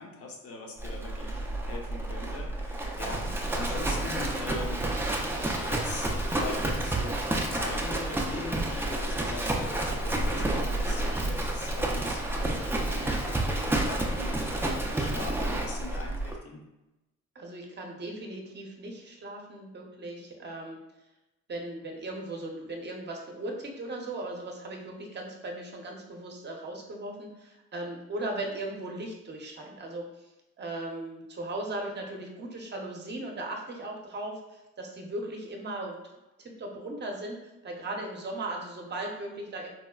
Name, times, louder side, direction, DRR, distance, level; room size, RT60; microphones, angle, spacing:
voice 1, 0.0-16.6, left 3 dB, 50° left, 1 dB, 0.7 m, -42 dB
Livestock farm animals working animals, 0.8-16.3, right 1 dB, 10° right, 0.4 m, -30 dB
voice 2, 3.0-3.3 17.3-20.8 21.5-30.3 30.6-36.1 36.4-39.7, right 2 dB, 35° right, 1 dB, 0.7 m, -38 dB
4.1 x 2.1 x 2.3 m, 0.98 s
cardioid pair, 90°, 30 cm